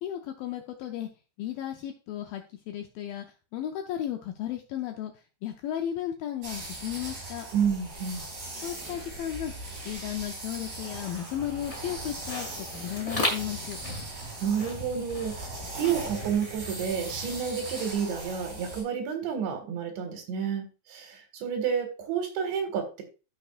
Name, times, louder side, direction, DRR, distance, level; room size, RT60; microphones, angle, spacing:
voice 1, 0.0-1.1 1.4-7.5 8.6-9.5 9.9-13.8, left 11 dB, 80° left, 4 dB, 2.1 m, -34 dB
sound 1, 6.4-18.8, right 2 dB, 60° right, 6.9 m, -40 dB
voice 2, 7.5-8.3 14.4-23.0, right 7 dB, 90° right, 5 dB, 4.1 m, -30 dB
sound 2, 10.7-18.0, left 1 dB, 30° left, 1.3 m, -38 dB
14.5 x 6.1 x 2.4 m, 0.32 s
omnidirectional pair, 5.0 m